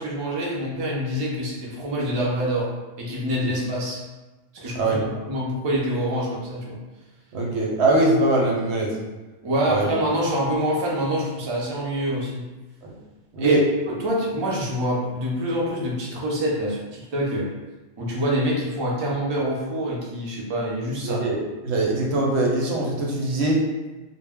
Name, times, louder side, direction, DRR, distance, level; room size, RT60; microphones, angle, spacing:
voice 1, 0.0-4.0 4.5-6.8 9.4-12.5 13.4-13.6 13.9-17.5 18.0-21.3, equal, 40° right, -3 dB, 0.4 m, -26 dB
voice 2, 7.3-9.0 9.6-9.8 13.3-13.6 21.0-21.4 21.6-23.6, right 2 dB, 80° right, -2 dB, 0.9 m, -22 dB
2.1 x 2.0 x 3.5 m, 1.1 s
omnidirectional pair, 1.2 m